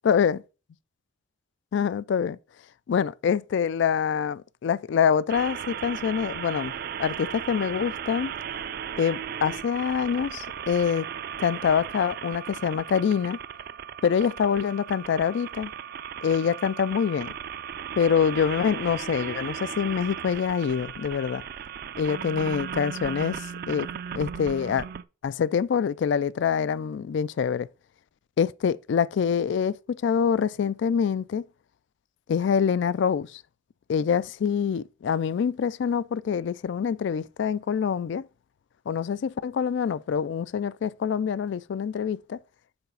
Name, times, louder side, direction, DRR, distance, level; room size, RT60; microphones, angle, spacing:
voice 1, 0.0-0.4 1.7-2.4 2.9-6.7 7.0-8.3 9.0-11.1 11.4-13.4 14.0-15.7 16.2-17.3 18.0-21.4 22.0-23.9 24.1-24.9 25.2-27.7 28.4-31.5 32.3-33.4 33.9-38.3 38.9-42.4, left 7 dB, 60° left, 0.3 m, -25 dB
sound 1, 5.3-25.0, right 8 dB, 50° right, 0.4 m, -36 dB
7.0 x 4.1 x 5.1 m
head